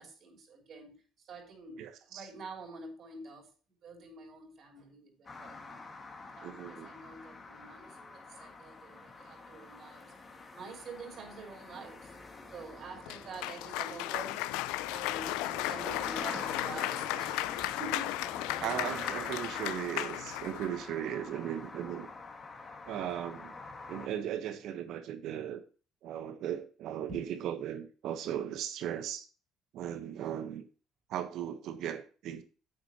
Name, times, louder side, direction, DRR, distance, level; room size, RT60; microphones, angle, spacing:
voice 1, 0.0-3.5 3.8-5.8 6.3-10.1 10.5-12.2 12.5-14.6 14.9-18.3 27.1-27.2 30.2-30.4, right 3 dB, 55° right, 2 dB, 3.5 m, -47 dB
voice 2, 1.8-2.2 6.4-6.9 18.6-22.1 22.9-23.5 23.9-25.6 26.0-29.3 29.7-30.6 31.1-32.4, right 10 dB, 70° right, 10 dB, 1.2 m, -37 dB
sound 1, 5.3-24.1, left 3 dB, 30° left, 2.0 m, -46 dB
Cheering / Applause, 13.1-20.7, left 17 dB, 90° left, 0.3 m, -35 dB
10.5 x 7.7 x 3.0 m, 0.36 s
cardioid pair, 95°, 0 cm